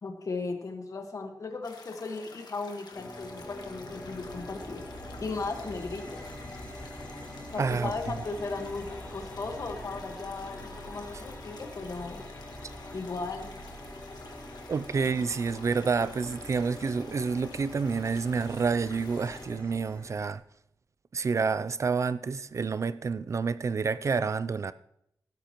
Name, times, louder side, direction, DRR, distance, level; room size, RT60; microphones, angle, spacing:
voice 1, 0.0-4.8 5.2-6.3 7.5-12.2 12.9-13.6, left 3 dB, 55° left, 1.4 m, -36 dB
sound 1, 1.6-19.5, left 4 dB, 85° left, 1.5 m, -50 dB
sound 2, 2.9-20.3, left 1 dB, 20° left, 3.0 m, -44 dB
voice 2, 7.6-7.9 14.7-20.4 21.1-24.7, right 5 dB, 45° right, 0.3 m, -29 dB
16.5 x 12.0 x 3.0 m
wide cardioid pair, 155°, 7 cm